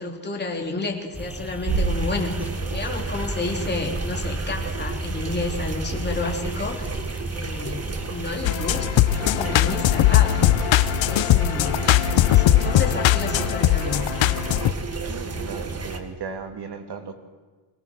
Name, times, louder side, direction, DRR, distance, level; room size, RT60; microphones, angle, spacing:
voice 1, 0.0-6.9 7.3-11.8 12.3-14.0, left 3 dB, 20° left, 1 dB, 2.8 m, -31 dB
sound 1, 1.1-8.4, equal, 5° right, 1.1 m, -36 dB
sound 2, 1.7-16.0, right 3 dB, 30° right, 1.8 m, -31 dB
sound 3, 8.4-14.7, left 13 dB, 65° left, 0.8 m, -20 dB
voice 2, 15.0-17.1, right 5 dB, 50° right, 7 dB, 2.3 m, -36 dB
24.0 x 18.5 x 6.2 m, 1.4 s
cardioid pair, 125°, 49 cm